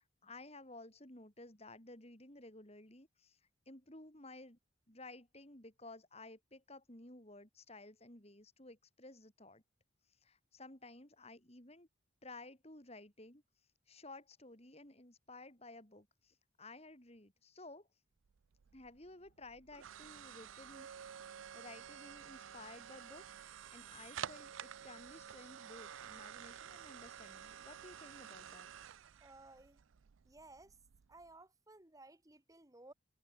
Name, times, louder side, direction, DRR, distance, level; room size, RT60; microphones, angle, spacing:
voice 1, 0.0-4.6 4.9-9.6 10.1-11.9 12.2-13.4 13.9-17.9 18.7-20.9 21.5-23.3 23.7-28.7, left 2 dB, 30° left, 3.8 m, -55 dB
sound 1, 18.3-31.3, right 9 dB, 90° right, 0.5 m, -51 dB
voice 2, 29.2-29.8 30.2-30.8 31.1-32.9, right 2 dB, 15° right, 1.3 m, -58 dB
head